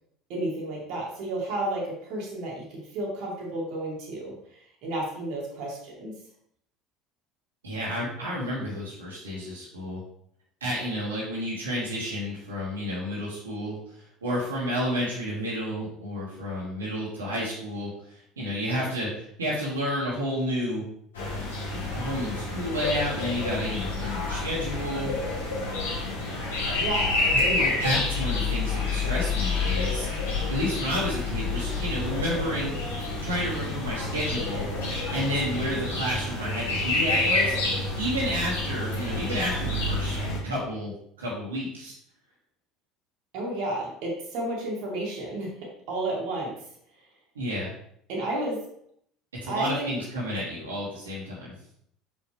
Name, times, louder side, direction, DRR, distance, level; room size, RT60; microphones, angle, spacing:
voice 1, 0.3-6.1 26.7-27.6 43.3-46.5 48.1-48.6 49.5-49.9, right 1 dB, 60° right, -3 dB, 2.1 m, -32 dB
voice 2, 7.6-10.0 10.6-13.8 14.2-20.8 21.6-25.1 27.3-30.1 30.5-32.7 33.2-34.7 35.1-37.6 38.0-40.2 40.4-41.9 47.4-47.7 49.4-51.5, equal, 85° right, -6 dB, 2.0 m, -31 dB
sound 1, 21.2-40.4, left 3 dB, 80° left, 2.5 m, -28 dB
6.1 x 5.7 x 3.3 m, 0.69 s
figure-of-eight pair, 65°, 0 cm